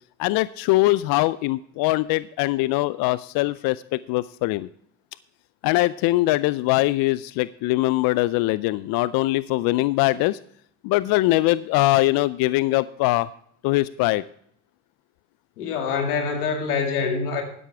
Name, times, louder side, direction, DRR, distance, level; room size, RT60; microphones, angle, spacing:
voice 1, 0.2-4.7 5.6-10.4 10.8-13.3 13.6-14.2, left 18 dB, 55° left, 17 dB, 0.5 m, -22 dB
voice 2, 15.6-17.4, left 5 dB, 85° left, 4 dB, 2.3 m, -25 dB
12.5 x 10.5 x 3.4 m, 0.66 s
hypercardioid pair, 80°, 43 cm